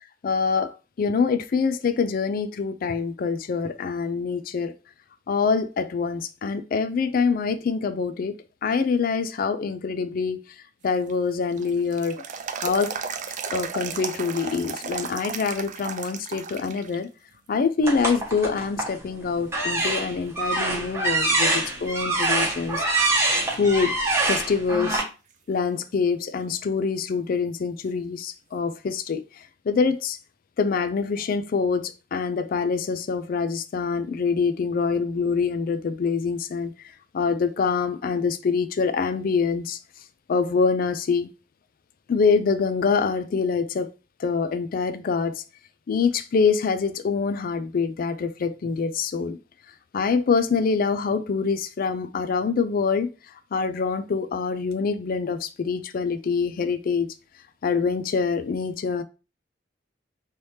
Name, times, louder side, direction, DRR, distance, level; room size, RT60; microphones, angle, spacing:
voice 1, 0.2-0.7 1.0-4.7 5.3-8.3 8.6-10.4 10.8-12.2 12.6-12.9 13.5-17.1 17.5-22.9 23.6-24.0 24.3-25.0 25.5-29.2 29.7-30.2 30.6-36.7 37.1-39.8 40.3-41.3 42.1-43.9 44.2-45.4 45.9-49.4 49.9-53.1 53.5-57.1 57.6-59.0, left 5 dB, 50° left, 0.4 m, -25 dB
sound 1, 10.9-17.0 17.3-17.4 18.2-18.7 19.2-19.3 19.8-21.0 21.3-21.4 24.8-24.9 27.8-27.9, right 6 dB, 45° right, 0.4 m, -35 dB
sound 2, 17.8-19.0 19.5-25.0, right 2 dB, 15° right, 1.0 m, -24 dB
3.3 x 3.1 x 2.7 m
head